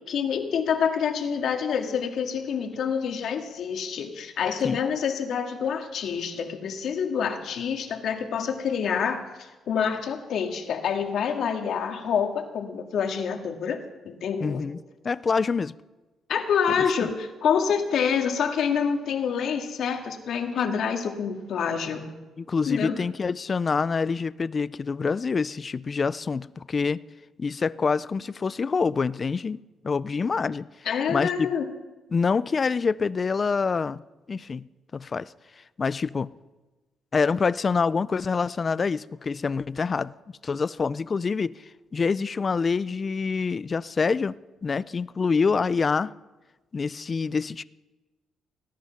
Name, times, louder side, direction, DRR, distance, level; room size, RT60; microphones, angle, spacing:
voice 1, 0.1-14.6 16.3-22.1 22.7-22.9 30.9-31.7, left 7 dB, 70° left, 2.0 m, -27 dB
voice 2, 14.4-14.8 15.0-15.7 22.4-27.0 27.4-30.7 31.1-31.5 32.1-34.0 34.3-34.6 34.9-35.3 35.8-36.3 37.1-40.1 40.4-41.5 41.9-44.3 44.6-46.1 46.7-47.6, left 5 dB, 35° left, 0.5 m, -26 dB
19.0 x 10.5 x 5.9 m
cardioid pair, 90°, 0 cm